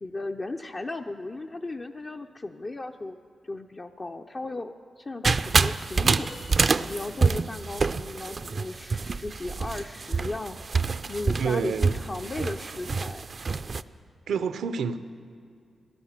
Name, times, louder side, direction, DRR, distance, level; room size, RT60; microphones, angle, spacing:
voice 1, 0.0-3.2 3.4-6.3 6.9-13.3 13.5-13.8, left 2 dB, 35° left, 3 dB, 0.5 m, -36 dB
sound 1, 5.2-13.8, right 4 dB, 45° right, 0.4 m, -27 dB
sound 2, 6.2-7.6 8.3-8.4, left 3 dB, 70° left, 2.0 m, -48 dB
voice 2, 11.4-11.9 12.4-12.5 14.3-15.0, right 6 dB, 90° right, 11 dB, 0.6 m, -28 dB
17.0 x 11.5 x 7.3 m, 2.3 s
cardioid pair, 95°, 0 cm